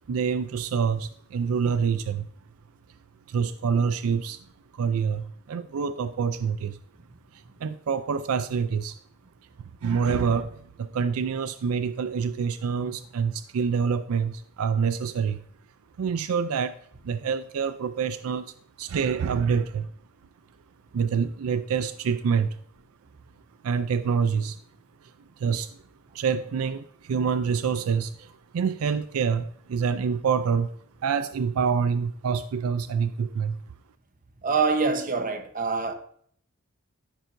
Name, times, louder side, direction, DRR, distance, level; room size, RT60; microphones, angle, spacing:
voice 1, 0.0-2.3 3.3-4.4 4.7-6.8 7.3-9.0 9.8-15.4 16.0-19.9 20.9-22.6 23.6-24.6 25.0-25.1 25.4-25.7 26.1-30.7 31.0-33.6, right 6 dB, 80° right, 0.4 m, -26 dB
voice 2, 34.4-35.9, right 4 dB, 40° right, 0.9 m, -25 dB
13.5 x 5.6 x 2.6 m
head